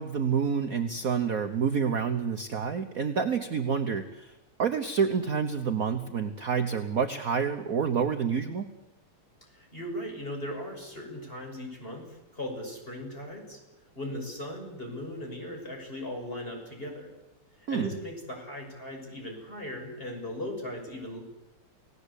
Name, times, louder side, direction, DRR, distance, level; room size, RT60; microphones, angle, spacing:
voice 1, 0.0-4.3 4.6-8.7 17.7-17.9, right 6 dB, 45° right, 6 dB, 1.4 m, -28 dB
voice 2, 9.5-13.6 13.9-17.1 17.7-21.2, left 1 dB, 25° left, 2 dB, 6.5 m, -38 dB
29.5 x 18.0 x 8.4 m, 0.98 s
omnidirectional pair, 2.4 m